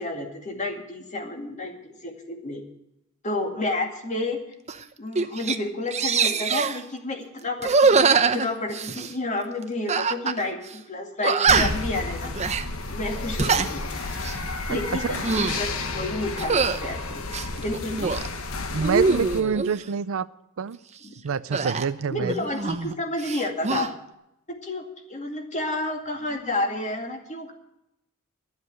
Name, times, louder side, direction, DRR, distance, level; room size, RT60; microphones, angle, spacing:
voice 1, 0.0-2.6 3.2-4.4 5.0-12.3 12.9-13.8 14.7-17.2 17.6-18.1 21.0-21.2 22.1-23.9 24.5-27.5, left 2 dB, 35° left, 3 dB, 2.3 m, -30 dB
sound 1, 4.7-4.8 5.2-5.6 5.9-6.8 7.6-9.1 9.9-10.4 10.7-10.8 11.2-11.9 12.3-12.6 13.2-13.7 14.1-14.4 15.0-15.6 16.4-16.8 17.3-18.3 18.8-19.7 21.5-22.9 23.2-23.9, right 4 dB, 30° right, 0.7 m, -23 dB
sound 2, 11.5-19.4, left 3 dB, 75° left, 1.4 m, -32 dB
voice 2, 18.7-20.3 20.6-20.8 21.2-22.3, right 6 dB, 70° right, 16 dB, 0.5 m, -26 dB
12.0 x 7.8 x 9.4 m, 0.84 s
head